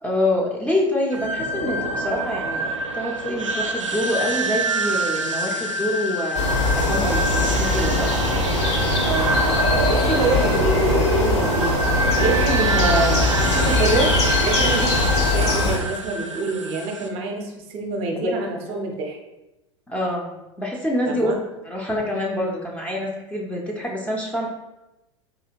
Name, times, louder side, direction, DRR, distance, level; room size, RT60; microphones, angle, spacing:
voice 1, 0.0-8.2 18.2-18.3 19.9-20.3 20.6-21.3 21.6-24.5, left 1 dB, 10° left, -2 dB, 0.5 m, -26 dB
sound 1, 1.1-17.1, right 1 dB, 80° right, 0.4 m, -26 dB
sound 2, 6.3-15.8, left 2 dB, 60° left, 1.0 m, -21 dB
voice 2, 9.0-9.4 9.7-11.8 12.2-14.1 14.4-19.2 21.2-21.4, right 3 dB, 35° right, 2 dB, 0.6 m, -26 dB
4.0 x 2.7 x 2.4 m, 0.96 s
figure-of-eight pair, 85°, 16 cm